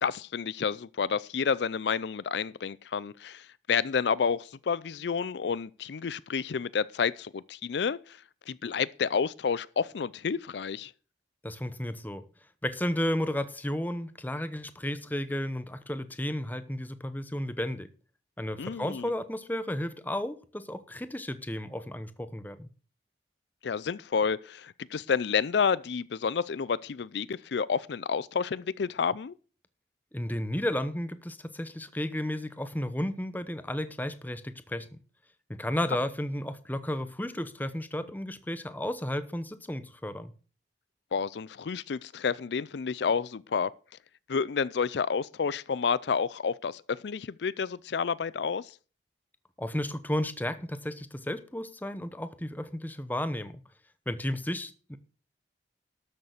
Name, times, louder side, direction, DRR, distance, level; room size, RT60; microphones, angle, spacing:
voice 1, 0.0-8.2 8.5-10.9 18.6-19.1 23.6-29.3 41.1-43.7 44.3-48.7, left 6 dB, 70° left, 0.4 m, -30 dB
voice 2, 11.4-12.2 12.6-17.9 18.4-22.7 30.1-34.9 35.5-40.3 49.6-53.6 54.1-55.0, left 1 dB, 10° left, 0.8 m, -33 dB
12.5 x 6.7 x 6.6 m
head